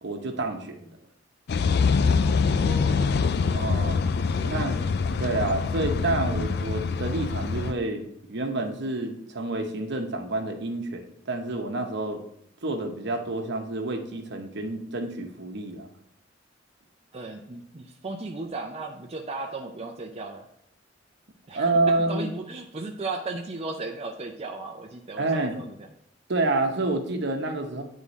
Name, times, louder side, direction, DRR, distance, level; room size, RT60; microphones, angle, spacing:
voice 1, 0.0-1.0 3.5-4.0 4.4-4.8 5.2-12.2 12.6-15.9 21.5-22.3 25.2-25.6 26.3-27.8, right 2 dB, 60° right, 4 dB, 0.9 m, -28 dB
sound 1, 1.5-7.7, left 5 dB, 55° left, 0.4 m, -24 dB
voice 2, 2.5-3.6 4.3-5.2 17.1-20.5 21.5-25.9, right 3 dB, 35° right, 1 dB, 0.5 m, -36 dB
9.9 x 3.7 x 4.1 m, 0.73 s
head